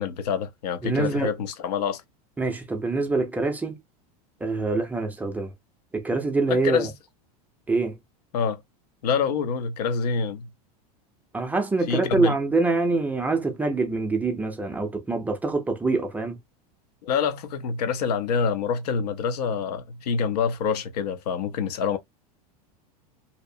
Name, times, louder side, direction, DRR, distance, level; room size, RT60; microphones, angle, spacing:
voice 1, 0.0-2.0 6.5-6.9 8.3-8.6 9.0-10.5 11.9-12.4 17.0-22.0, left 6 dB, 85° left, 0.6 m, -26 dB
voice 2, 0.8-1.3 2.4-3.8 4.4-5.5 5.9-6.9 7.7-7.9 11.3-16.4, right 3 dB, 10° right, 0.4 m, -25 dB
2.7 x 2.0 x 2.5 m
supercardioid pair, 140°, 20 cm